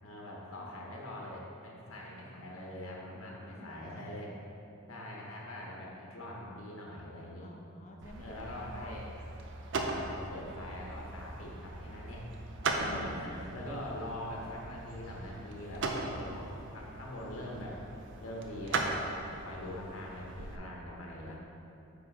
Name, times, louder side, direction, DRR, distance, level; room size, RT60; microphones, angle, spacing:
voice 1, 0.0-4.3 4.9-7.5 8.2-9.1 9.7-12.3 12.7-17.8 18.2-21.4, left 1 dB, 70° left, -3 dB, 1.0 m, -43 dB
voice 2, 3.2-4.0 7.4-9.0 16.0-16.4 20.9-21.4, left 1 dB, 35° left, 1 dB, 0.6 m, -53 dB
sound 1, 8.0-20.6, right 3 dB, 60° right, 0.6 m, -39 dB
9.2 x 3.9 x 3.7 m, 2.8 s
head